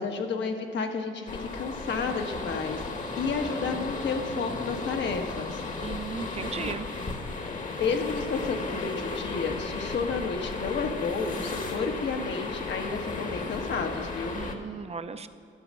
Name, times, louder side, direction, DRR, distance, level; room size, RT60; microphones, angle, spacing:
voice 1, 0.0-5.6 7.8-14.4, left 4 dB, 65° left, 4 dB, 1.4 m, -31 dB
sound 1, 1.3-14.5, left 3 dB, 40° left, 1.3 m, -34 dB
voice 2, 5.8-6.9 14.3-15.3, right 5 dB, 30° right, 10 dB, 0.7 m, -36 dB
12.0 x 7.3 x 6.3 m, 2.6 s
cardioid pair, 90°, 20 cm